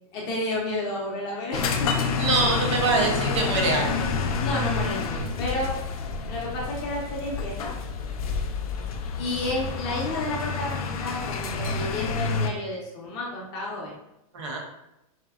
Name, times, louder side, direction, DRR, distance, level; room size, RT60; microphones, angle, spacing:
voice 1, 0.1-1.9 4.4-5.7 6.3-7.7 9.2-13.9, left 2 dB, 20° left, -3 dB, 0.4 m, -31 dB
sound 1, 1.5-12.5, left 4 dB, 90° left, 0.4 m, -28 dB
voice 2, 2.2-4.1 14.3-14.6, right 3 dB, 55° right, 1 dB, 0.8 m, -24 dB
4.1 x 2.0 x 2.2 m, 0.85 s
supercardioid pair, 165°, 18 cm